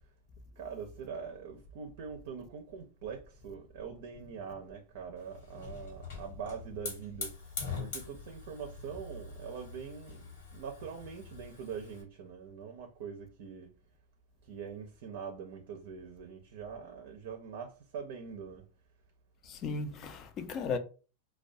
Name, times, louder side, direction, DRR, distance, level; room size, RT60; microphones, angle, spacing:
voice 1, 0.6-13.7 14.4-18.7, right 6 dB, 65° right, 0.5 m, -43 dB
Hiss / Fire, 5.2-12.0, left 4 dB, 75° left, 1.3 m, -44 dB
voice 2, 19.4-20.8, left 4 dB, 35° left, 0.4 m, -36 dB
2.2 x 2.2 x 2.6 m
hypercardioid pair, 120°, 0 cm